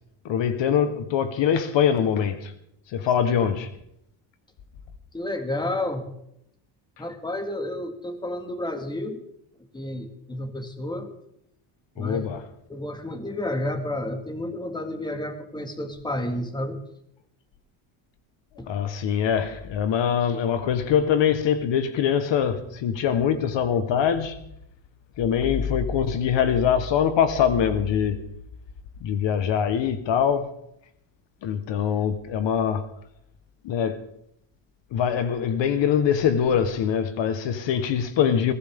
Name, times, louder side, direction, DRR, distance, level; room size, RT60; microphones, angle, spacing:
voice 1, 0.2-2.5 2.9-3.7 12.0-12.5 18.7-24.4 25.2-28.2 29.0-30.5 31.4-32.9 33.6-34.1 34.9-38.5, left 8 dB, 65° left, 1.4 m, -23 dB
voice 2, 5.1-6.1 7.0-9.2 9.7-11.1 12.0-12.3 12.7-16.8 18.6-18.7, left 1 dB, 10° left, 2.0 m, -31 dB
22.0 x 16.0 x 3.7 m
cardioid pair, 130°, 48 cm